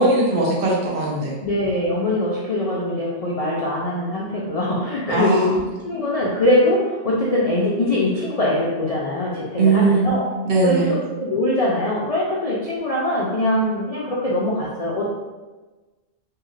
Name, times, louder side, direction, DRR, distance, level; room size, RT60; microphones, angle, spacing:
voice 1, 0.0-1.3 5.1-5.5 9.6-10.1 10.4-11.0, right 3 dB, 60° right, -3 dB, 0.8 m, -19 dB
voice 2, 1.4-10.3 10.6-15.1, left 1 dB, 55° left, -6 dB, 0.4 m, -22 dB
2.7 x 2.3 x 3.1 m, 1.2 s
omnidirectional pair, 1.2 m